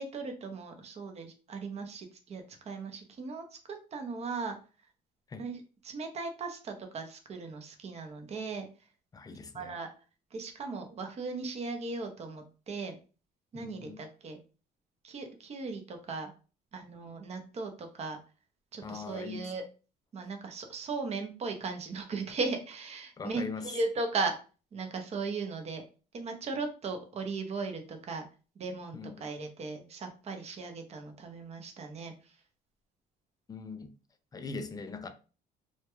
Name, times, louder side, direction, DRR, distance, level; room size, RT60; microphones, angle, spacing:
voice 1, 0.0-4.6 5.4-8.7 9.5-9.9 10.3-13.0 13.5-14.4 15.0-16.3 16.7-18.2 18.7-19.6 20.1-24.3 24.7-25.8 26.1-28.3 28.6-32.3, right 4 dB, 40° right, 0.6 m, -37 dB
voice 2, 9.1-9.8 13.5-14.0 18.8-19.5 23.2-23.7 28.9-29.2 33.5-33.9 34.3-35.1, left 4 dB, 20° left, 0.3 m, -41 dB
2.2 x 2.1 x 2.9 m
cardioid pair, 110°, 17 cm